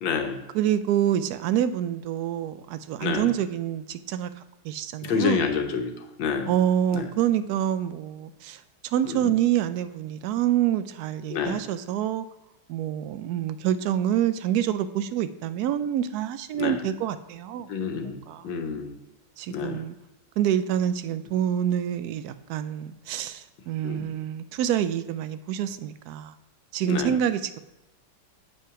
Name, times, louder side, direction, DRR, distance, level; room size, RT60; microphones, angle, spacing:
voice 1, 0.0-0.4 3.0-3.3 5.0-5.9 6.2-6.5 6.9-7.1 9.1-9.3 11.3-11.6 16.6-16.8 17.7-18.2 18.4-18.9 19.5-19.8 23.8-24.1 26.9-27.1, left 6 dB, 80° left, 5 dB, 1.7 m, -28 dB
voice 2, 0.5-4.3 4.6-5.5 6.5-12.2 12.7-18.5 19.4-19.9 20.4-26.3 26.7-27.6, right 10 dB, 75° right, 12 dB, 0.9 m, -27 dB
8.2 x 5.6 x 4.8 m, 0.98 s
omnidirectional pair, 2.1 m